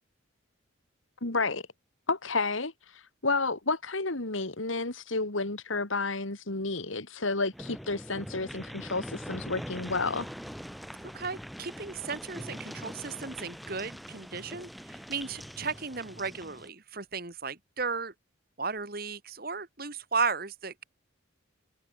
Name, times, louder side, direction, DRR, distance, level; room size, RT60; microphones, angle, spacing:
voice 1, 1.2-1.6 2.1-2.7 3.2-10.3, left 3 dB, 75° left, 2.5 m, -31 dB
sound 1, 7.5-16.7, equal, ahead, 3.1 m, -42 dB
voice 2, 11.1-18.1 18.6-20.8, right 4 dB, 45° right, 2.2 m, -35 dB
head